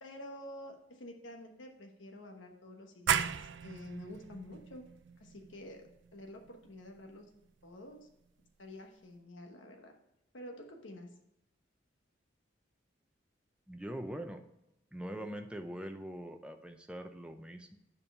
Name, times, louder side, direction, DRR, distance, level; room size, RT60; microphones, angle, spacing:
voice 1, 0.0-4.8 5.2-7.3 7.6-8.1 8.6-9.9 10.3-11.1, left 1 dB, 80° left, 2 dB, 1.2 m, -49 dB
sound 1, 3.1-8.5, right 8 dB, 65° right, 0.4 m, -38 dB
voice 2, 13.7-14.4 14.9-17.8, right 1 dB, 5° right, 5 dB, 0.6 m, -42 dB
7.1 x 5.4 x 5.4 m, 0.84 s
head